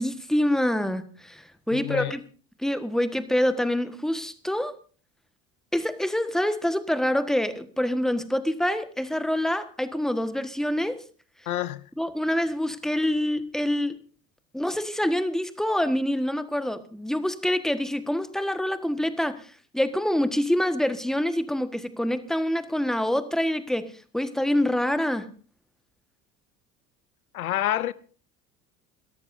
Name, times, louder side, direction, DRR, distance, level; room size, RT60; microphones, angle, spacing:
voice 1, 0.0-2.2 2.6-4.7 5.7-11.0 12.0-13.9 14.5-23.9 24.1-25.3, left 1 dB, ahead, 1.4 m, -26 dB
voice 2, 1.7-2.1 11.5-11.8 27.3-27.9, left 13 dB, 85° left, 0.7 m, -27 dB
29.0 x 13.5 x 2.7 m
hypercardioid pair, 70°, 42 cm